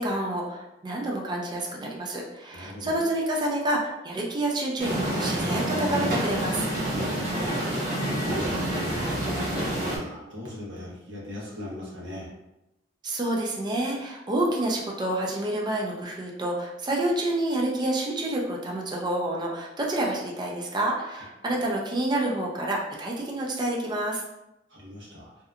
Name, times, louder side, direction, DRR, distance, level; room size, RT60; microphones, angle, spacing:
voice 1, 0.0-6.7 13.0-24.2, right 1 dB, 25° right, -1 dB, 0.4 m, -28 dB
voice 2, 2.5-3.0 7.0-9.2 9.5-12.3 21.5-21.6 24.7-25.3, left 1 dB, 75° right, -5 dB, 1.0 m, -40 dB
sound 1, 4.8-10.0, right 1 dB, 45° right, 0.9 m, -27 dB
2.8 x 2.2 x 2.4 m, 0.92 s
head